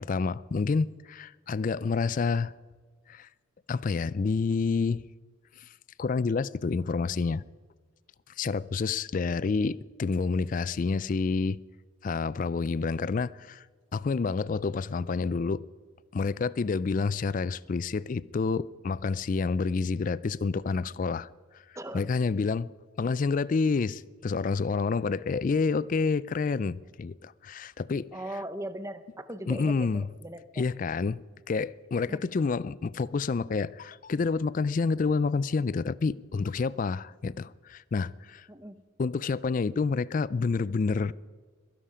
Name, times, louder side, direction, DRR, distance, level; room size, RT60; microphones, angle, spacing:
voice 1, 0.0-2.5 3.1-3.3 3.7-5.0 6.0-7.4 8.4-11.6 12.0-13.6 13.9-15.6 16.1-21.3 21.9-22.7 23.0-28.1 29.5-30.0 30.6-31.2 31.5-38.5 39.0-41.1, left 4 dB, 40° left, 0.3 m, -28 dB
voice 2, 21.8-22.1 28.1-30.6 32.1-32.2 38.5-38.8, right 1 dB, 15° right, 0.7 m, -39 dB
22.0 x 11.0 x 5.0 m
head